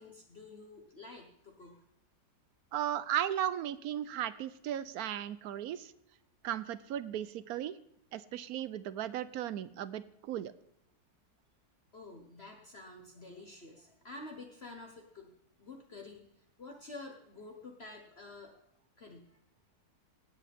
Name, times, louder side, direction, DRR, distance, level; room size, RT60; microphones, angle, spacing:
voice 1, 0.0-1.8 11.9-15.3 15.6-16.2 16.6-18.5 19.0-19.4, left 2 dB, 40° left, 2 dB, 1.4 m, -49 dB
voice 2, 2.7-5.9 6.4-7.8 8.1-10.5, right 11 dB, 70° right, 15 dB, 1.1 m, -36 dB
17.5 x 8.1 x 3.5 m, 0.75 s
omnidirectional pair, 1.7 m